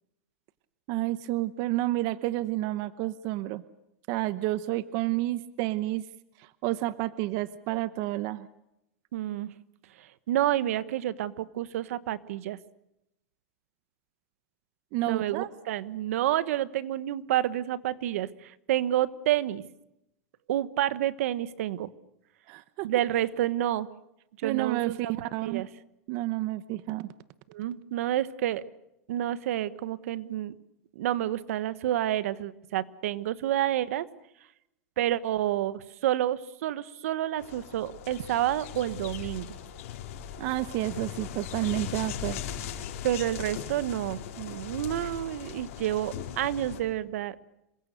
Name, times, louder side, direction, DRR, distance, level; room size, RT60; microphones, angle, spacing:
voice 1, 0.9-3.6 4.1-6.0 6.4-8.5 14.9-15.5 22.5-22.9 24.4-25.7 26.1-27.1 40.4-42.4, right 16 dB, 45° right, 15 dB, 1.0 m, -30 dB
voice 2, 9.1-9.5 10.0-12.6 15.1-19.6 20.5-21.9 22.8-23.9 24.4-25.7 27.5-28.6 29.1-30.5 30.9-34.1 35.0-39.5 43.0-47.4, right 12 dB, 70° right, 16 dB, 1.3 m, -29 dB
sound 1, 37.4-46.8, left 9 dB, 65° left, 4.9 m, -39 dB
27.5 x 23.0 x 6.5 m, 0.85 s
supercardioid pair, 150°, 8 cm